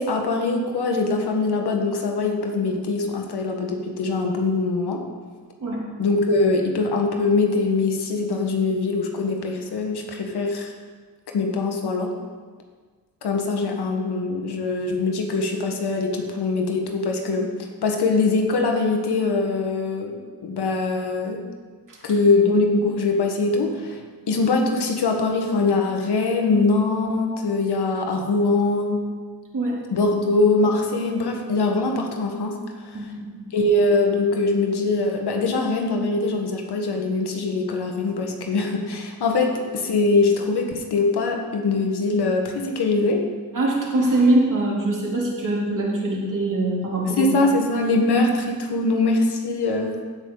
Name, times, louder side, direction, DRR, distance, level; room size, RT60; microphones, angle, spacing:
voice 1, 0.0-5.0 6.0-10.7 11.3-12.2 13.2-17.5 17.8-21.4 22.0-24.0 24.3-29.1 29.9-33.0 33.5-43.2 47.2-50.0, left 3 dB, 75° left, 2 dB, 1.6 m, -22 dB
voice 2, 43.5-47.3, right 2 dB, 50° right, -4 dB, 3.3 m, -22 dB
16.0 x 6.8 x 4.0 m, 1.5 s
cardioid pair, 70°, 39 cm